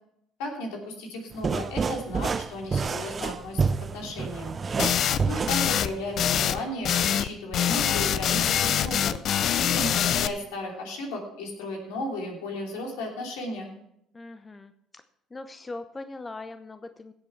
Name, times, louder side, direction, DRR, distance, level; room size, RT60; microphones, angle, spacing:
voice 1, 0.4-3.6 3.9-4.6 5.2-9.1 9.6-13.7, left 1 dB, 75° left, 1 dB, 2.9 m, -34 dB
sound 1, 1.3-6.5, right 5 dB, 35° right, 0.5 m, -29 dB
voice 2, 4.7-5.0 14.1-15.0 15.3-17.1, left 2 dB, 25° left, 10 dB, 0.8 m, -41 dB
sound 2, 4.8-5.2 5.5-5.9 6.2-6.6 6.8-7.3 7.5-10.3, left 9 dB, 55° left, 0.6 m, -24 dB
16.5 x 7.6 x 4.6 m, 0.76 s
hypercardioid pair, 65°, 0 cm